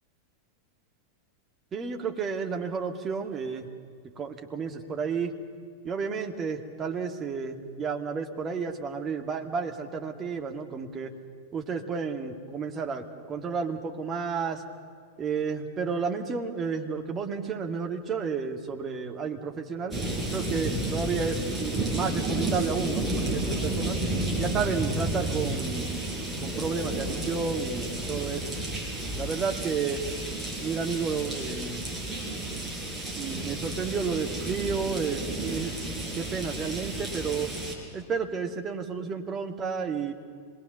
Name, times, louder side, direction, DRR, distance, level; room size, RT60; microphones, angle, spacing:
voice 1, 1.7-3.7 4.0-5.3 5.8-11.1 11.5-14.6 15.2-20.0 20.3-24.0 24.4-26.0 26.4-28.4 29.1-30.0 30.3-31.8 33.2-35.8 36.2-37.5 37.9-40.1, right 5 dB, 25° right, 3 dB, 2.1 m, -31 dB
sound 1, 19.9-37.7, right 2 dB, 5° right, 5.4 m, -32 dB
26.0 x 21.0 x 6.9 m, 2.2 s
figure-of-eight pair, 90°, 0 cm